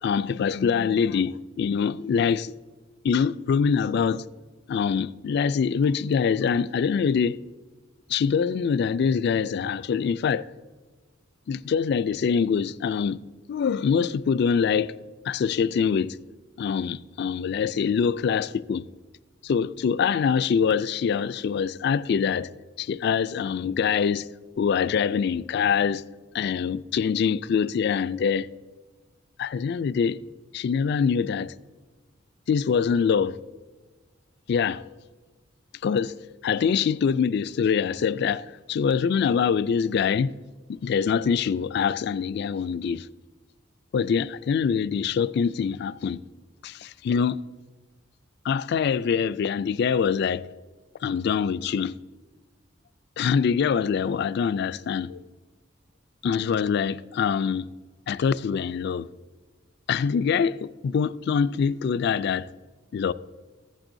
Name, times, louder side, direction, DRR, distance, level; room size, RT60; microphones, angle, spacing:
voice 1, 0.0-2.5 3.0-4.2 4.7-7.4 8.1-10.5 11.5-13.2 13.5-14.9 15.2-16.2 16.6-18.9 19.4-22.5 22.8-24.3 24.6-26.0 26.3-28.5 29.4-30.2 30.5-31.5 32.5-33.4 34.5-34.8 35.8-36.2 36.4-40.3 40.7-43.1 43.9-46.2 46.6-47.4 48.4-50.5 51.0-52.0 53.2-55.2 56.2-57.7 58.1-59.1 59.9-62.5 62.9-63.1, left 6 dB, 55° left, 0.3 m, -24 dB
14.5 x 8.9 x 2.6 m
head